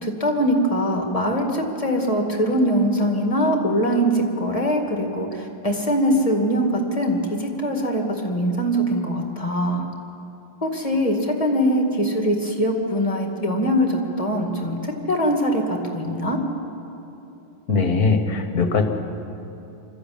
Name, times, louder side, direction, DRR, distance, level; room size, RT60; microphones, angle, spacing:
voice 1, 0.0-9.9 10.6-16.4, equal, 15° left, 2 dB, 2.0 m, -22 dB
voice 2, 17.7-18.8, left 4 dB, 45° left, 6 dB, 1.8 m, -20 dB
24.5 x 13.5 x 8.7 m, 2.9 s
omnidirectional pair, 2.4 m